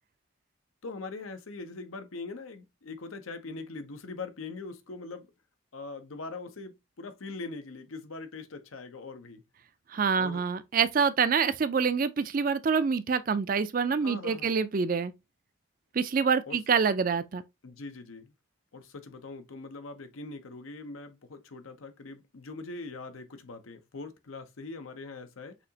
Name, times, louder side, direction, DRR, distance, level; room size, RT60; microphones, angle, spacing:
voice 1, 0.8-5.3 5.7-9.4 10.2-10.4 14.0-14.6 16.5-16.6 17.6-18.3 18.7-25.6, left 3 dB, 85° left, 0.7 m, -42 dB
voice 2, 9.9-15.1 15.9-17.4, right 5 dB, 40° right, 0.4 m, -26 dB
5.9 x 2.8 x 2.8 m
head